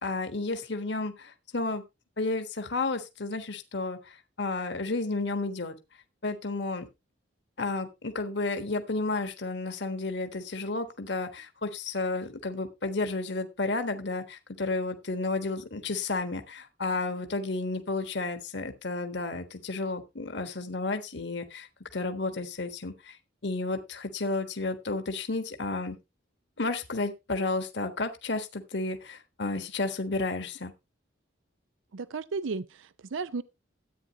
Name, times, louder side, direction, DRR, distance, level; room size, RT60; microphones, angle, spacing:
voice 1, 0.0-1.8 2.2-5.8 6.2-6.9 7.6-21.7 21.9-23.2 23.4-26.0 26.6-30.7, left 3 dB, 65° left, 1.4 m, -32 dB
voice 2, 31.9-33.4, right 4 dB, 85° right, 0.5 m, -34 dB
13.5 x 9.0 x 2.9 m
head